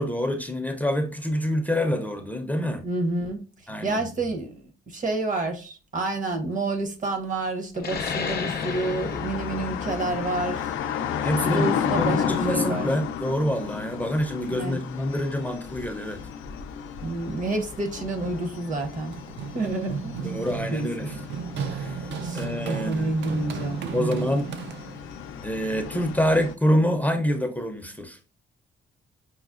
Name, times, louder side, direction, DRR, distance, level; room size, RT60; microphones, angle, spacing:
voice 1, 0.0-2.9 3.7-4.4 11.1-16.2 20.2-21.2 21.7-24.5 25.4-28.2, equal, 10° left, 0.5 m, -27 dB
voice 2, 2.8-3.4 3.8-10.8 11.4-12.9 14.5-14.8 17.0-19.1 19.5-20.2 20.7-21.1 22.2-24.2, right 2 dB, 40° right, 0.8 m, -29 dB
sound 1, 7.8-12.9, left 5 dB, 50° left, 0.7 m, -35 dB
sound 2, 7.9-26.5, left 8 dB, 80° left, 0.4 m, -33 dB
Run, 18.8-25.2, right 6 dB, 65° right, 0.5 m, -34 dB
5.6 x 2.0 x 2.4 m
cardioid pair, 90°, 20 cm